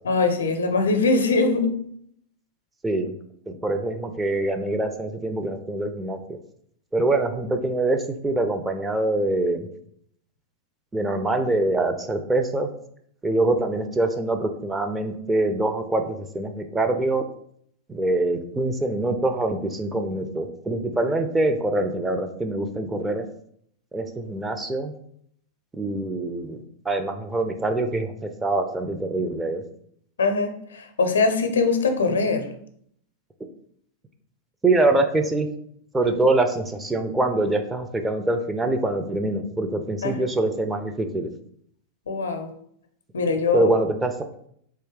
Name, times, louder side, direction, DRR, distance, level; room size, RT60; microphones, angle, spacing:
voice 1, 0.0-1.7 30.2-32.5 40.0-40.1 42.1-42.5 43.1-43.7, left 3 dB, 70° left, 7 dB, 0.5 m, -22 dB
voice 2, 3.5-6.2 6.9-9.7 10.9-12.7 13.2-17.3 17.9-23.3 23.9-24.9 25.7-26.6 26.9-29.6 34.6-35.5 35.9-41.3 43.5-44.1, right 2 dB, 10° right, 5 dB, 0.4 m, -24 dB
3.4 x 2.6 x 3.6 m, 0.68 s
figure-of-eight pair, 90°, 0 cm